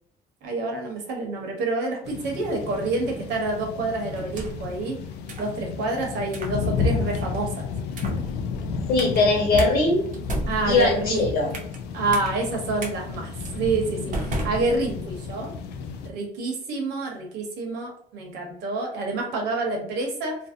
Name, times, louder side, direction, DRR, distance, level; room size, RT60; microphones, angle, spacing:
voice 1, 0.4-5.0 5.4-7.7 10.5-11.3 11.9-15.5 16.0-20.4, right 3 dB, 80° right, 0 dB, 0.9 m, -28 dB
sound 1, 2.0-16.1, left 5 dB, 85° left, 0.4 m, -32 dB
sound 2, 4.1-4.7 5.3-5.6 6.3-6.6 7.1-7.4 7.9-8.3 9.0-9.2 9.6-9.7 10.1-11.8 12.1-12.3 12.8-12.9 13.4-13.6 14.1-15.2, right 2 dB, 50° right, 0.7 m, -34 dB
voice 2, 8.9-10.0 10.7-11.5, left 3 dB, 65° left, 0 dB, 1.0 m, -20 dB
2.5 x 2.1 x 2.5 m, 0.67 s
cardioid pair, 110°, 17 cm